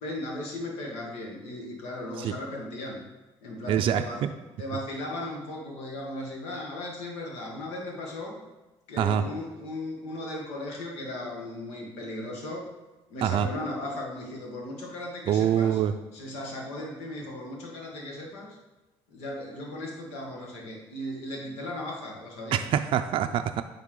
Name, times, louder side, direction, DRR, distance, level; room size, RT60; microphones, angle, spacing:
voice 1, 0.0-3.0 3.4-4.2 4.6-8.4 8.9-12.7 13.1-15.8 16.1-18.6 19.1-22.7, left 1 dB, 90° left, -1 dB, 1.6 m, -36 dB
voice 2, 3.7-4.3 9.0-9.2 13.2-13.5 15.3-15.9 22.5-23.6, right 9 dB, 55° right, 7 dB, 0.4 m, -25 dB
9.3 x 3.5 x 3.8 m, 1.1 s
cardioid pair, 105°, 10 cm